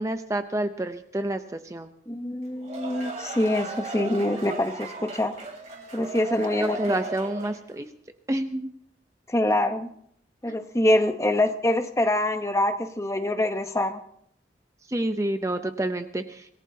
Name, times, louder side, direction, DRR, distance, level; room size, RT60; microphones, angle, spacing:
voice 1, 0.0-1.9 6.6-7.9 8.3-8.7 14.9-16.5, right 1 dB, 15° right, 8 dB, 0.6 m, -28 dB
voice 2, 2.1-5.4 5.9-7.1 9.3-9.9 10.4-14.0, left 1 dB, 15° left, 7 dB, 0.9 m, -25 dB
sound 1, 2.4-7.7, right 3 dB, 40° right, 3.3 m, -37 dB
26.0 x 18.5 x 2.8 m, 0.70 s
head